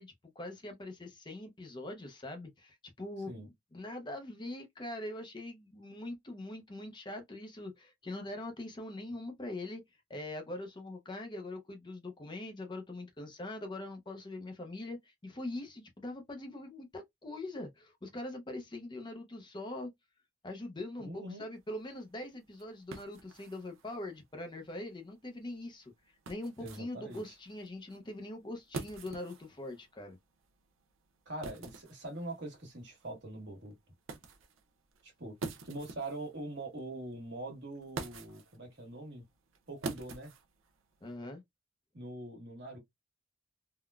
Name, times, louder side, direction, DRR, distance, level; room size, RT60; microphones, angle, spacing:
voice 1, 0.0-9.8 10.1-19.9 20.4-30.2 41.0-41.4, left 1 dB, 20° left, 0.5 m, -42 dB
voice 2, 21.0-21.4 26.6-27.3 31.2-33.7 35.0-35.4 35.6-39.2 39.7-40.3 41.9-42.8, right 1 dB, 55° right, 1.4 m, -43 dB
sound 1, 21.6-41.2, right 3 dB, 80° right, 0.7 m, -48 dB
3.7 x 2.1 x 2.3 m
head